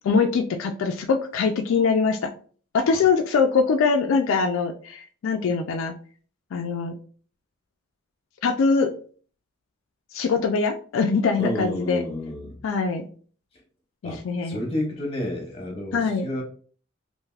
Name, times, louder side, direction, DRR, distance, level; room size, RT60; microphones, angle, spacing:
voice 1, 0.0-2.3 2.7-5.9 6.5-6.9 8.4-8.9 10.1-12.0 12.6-13.1 14.0-14.6 15.9-16.3, left 5 dB, 75° left, 4 dB, 0.3 m, -23 dB
voice 2, 11.4-12.6 14.0-16.4, left 1 dB, 30° left, 1 dB, 0.8 m, -30 dB
3.3 x 2.5 x 2.3 m, 0.43 s
head